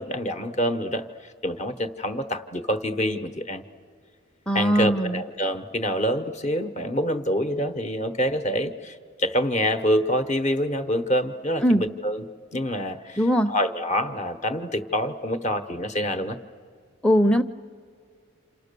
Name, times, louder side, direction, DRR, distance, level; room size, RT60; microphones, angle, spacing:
voice 1, 0.0-3.6 4.5-12.2 12.5-16.4, equal, 35° left, 8 dB, 1.0 m, -26 dB
voice 2, 4.5-5.2 11.6-11.8 13.2-13.5 17.0-17.4, equal, 5° left, 11 dB, 0.7 m, -20 dB
28.5 x 27.5 x 6.8 m, 2.1 s
head